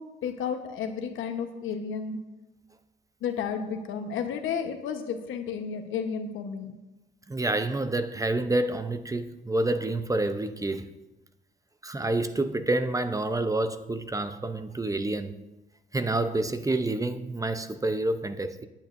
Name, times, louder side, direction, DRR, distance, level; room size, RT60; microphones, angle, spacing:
voice 1, 0.0-2.2 3.2-6.7, left 6 dB, 80° left, 1.1 m, -32 dB
voice 2, 7.3-10.9 11.8-15.3 15.9-18.7, right 2 dB, 15° right, 0.7 m, -28 dB
18.0 x 8.8 x 2.6 m
cardioid pair, 90°, 20 cm